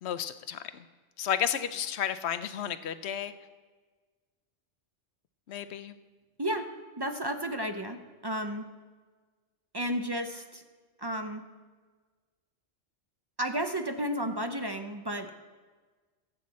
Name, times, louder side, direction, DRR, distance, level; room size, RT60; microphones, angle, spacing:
voice 1, 0.0-0.8 1.2-3.3 5.5-5.9, left 9 dB, 70° left, 12 dB, 0.9 m, -32 dB
voice 2, 6.4-6.7 7.0-8.6 9.7-10.6 11.0-11.4 13.4-15.3, right 1 dB, 25° right, 6 dB, 0.6 m, -32 dB
22.0 x 8.0 x 4.2 m, 1.4 s
omnidirectional pair, 1.2 m